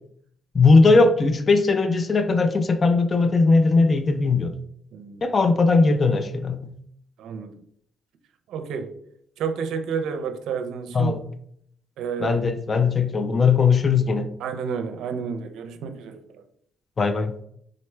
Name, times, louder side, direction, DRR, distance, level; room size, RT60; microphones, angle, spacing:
voice 1, 0.5-4.5 5.2-6.7 10.9-11.2 12.2-14.2 17.0-17.3, left 4 dB, 35° left, 9 dB, 0.4 m, -19 dB
voice 2, 4.9-5.3 7.2-7.5 8.5-8.9 9.4-11.2 12.0-12.4 14.4-16.4, right 6 dB, 80° right, 8 dB, 0.5 m, -30 dB
3.9 x 3.2 x 3.2 m, 0.67 s
cardioid pair, 90°, 0 cm